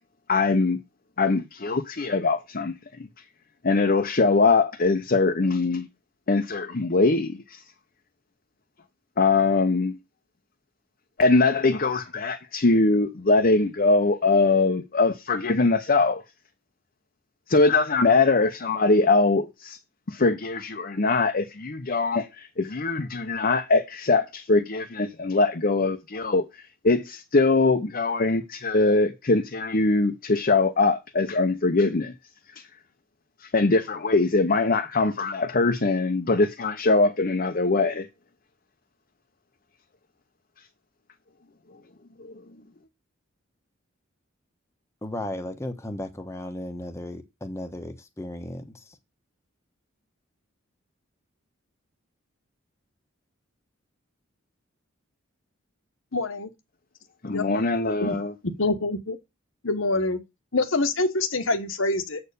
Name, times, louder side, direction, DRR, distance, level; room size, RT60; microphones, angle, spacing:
voice 1, 0.3-0.8 1.2-2.7 3.6-5.9 6.3-7.6 9.2-10.0 11.2-16.2 17.5-19.8 20.1-32.1 33.5-38.1 42.2-42.3 57.2-58.3, left 3 dB, 45° left, 0.9 m, -22 dB
voice 2, 45.0-49.0, left 1 dB, 15° left, 1.2 m, -35 dB
voice 3, 56.1-56.5 57.3-57.6 58.0-58.2 58.6-59.2 59.6-60.2 60.5-62.2, left 2 dB, 75° left, 1.3 m, -25 dB
7.9 x 4.5 x 6.8 m
head